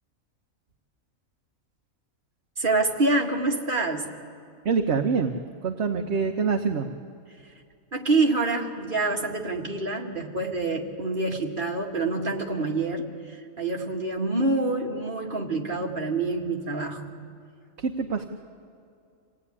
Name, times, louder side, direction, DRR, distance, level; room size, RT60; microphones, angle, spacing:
voice 1, 2.6-4.1 7.9-17.1, right 2 dB, 40° right, 0 dB, 2.3 m, -26 dB
voice 2, 4.6-5.4 5.6-6.9 17.8-18.2, right 5 dB, 55° right, 4 dB, 1.3 m, -25 dB
26.5 x 17.5 x 9.8 m, 2.4 s
omnidirectional pair, 1.4 m